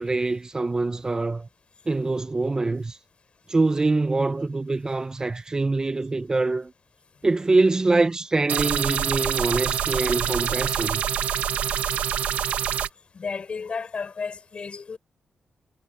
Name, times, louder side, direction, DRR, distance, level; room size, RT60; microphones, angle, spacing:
voice 1, 0.0-1.5 1.9-3.0 3.5-6.7 7.2-11.0, right 3 dB, 30° right, 0.8 m, -24 dB
sound 1, 8.5-12.9, right 9 dB, 85° right, 1.1 m, -26 dB
voice 2, 13.1-15.0, left 5 dB, 50° left, 6.7 m, -33 dB
cardioid pair, 75°, 2 cm